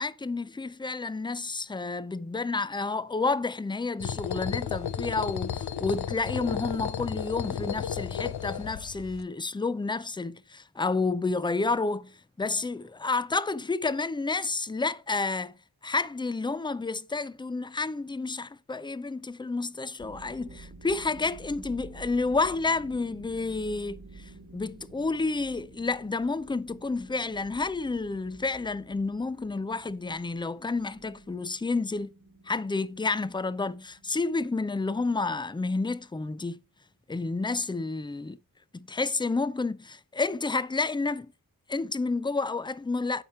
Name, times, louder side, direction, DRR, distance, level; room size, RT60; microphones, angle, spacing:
voice 1, 0.0-15.5 15.8-24.0 24.5-32.1 32.5-36.6 37.1-38.4 38.7-41.3 41.7-43.2, left 3 dB, 15° left, 0.5 m, -30 dB
sound 1, 4.0-9.2, left 8 dB, 90° left, 0.6 m, -33 dB
sound 2, 20.0-36.6, right 3 dB, 50° right, 1.4 m, -51 dB
8.9 x 4.3 x 4.6 m
cardioid pair, 45°, 37 cm